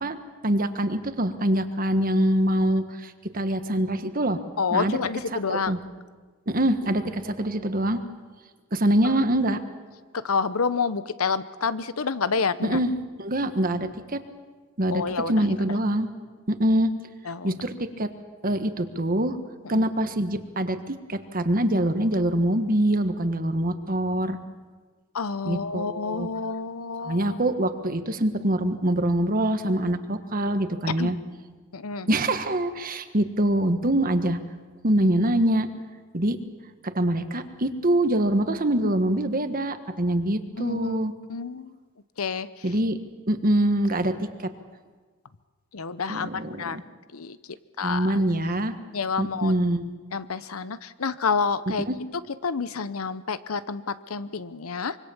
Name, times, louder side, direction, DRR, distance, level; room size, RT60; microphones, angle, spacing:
voice 1, 0.4-4.4 4.7-5.0 5.5-5.8 6.5-8.0 8.7-9.6 12.6-12.9 13.2-14.2 14.8-16.1 16.5-16.9 17.4-18.1 18.4-19.4 19.7-24.4 25.5-26.3 27.0-31.2 32.1-34.4 34.8-35.7 36.1-36.4 36.9-41.1 42.6-43.0 43.3-44.5 46.1-46.8 47.8-48.7 49.2-49.9 51.9-52.0, right 1 dB, 40° right, 8 dB, 1.5 m, -24 dB
voice 2, 4.6-5.8 9.0-9.1 10.1-12.8 14.9-15.5 17.3-17.6 19.6-19.9 25.1-27.4 31.0-31.1 31.7-32.1 40.6-41.0 41.3-41.8 42.2-42.6 45.7-46.8 47.1-47.4 47.8-48.2 48.9-49.5 50.1-51.9 52.4-55.0, left 5 dB, 90° left, 15 dB, 0.8 m, -29 dB
25.5 x 23.5 x 7.2 m, 1.4 s
head